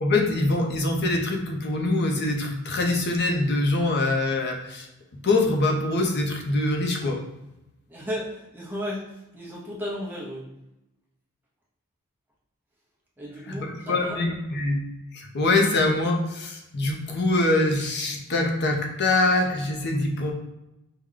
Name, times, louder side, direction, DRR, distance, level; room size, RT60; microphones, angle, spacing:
voice 1, 0.0-4.9 5.2-7.2 13.5-14.8 15.1-20.3, left 2 dB, 50° left, 1 dB, 0.6 m, -24 dB
voice 2, 7.9-10.5 13.2-14.2, equal, 10° right, -5 dB, 0.7 m, -34 dB
4.7 x 2.2 x 3.7 m, 0.95 s
head